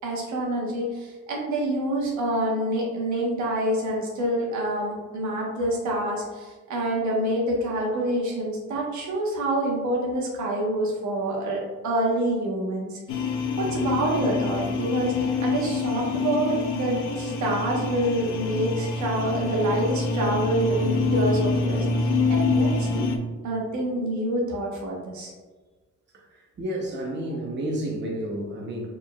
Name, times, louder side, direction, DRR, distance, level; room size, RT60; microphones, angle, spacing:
voice 1, 0.0-13.3 13.5-23.1 23.4-25.3, right 1 dB, 75° right, -2 dB, 1.2 m, -27 dB
sound 1, 13.1-23.2, left 3 dB, 85° left, 0.5 m, -26 dB
voice 2, 26.1-28.9, right 1 dB, 40° right, -1 dB, 0.8 m, -31 dB
4.7 x 3.8 x 2.3 m, 1.3 s
cardioid pair, 90°, 30 cm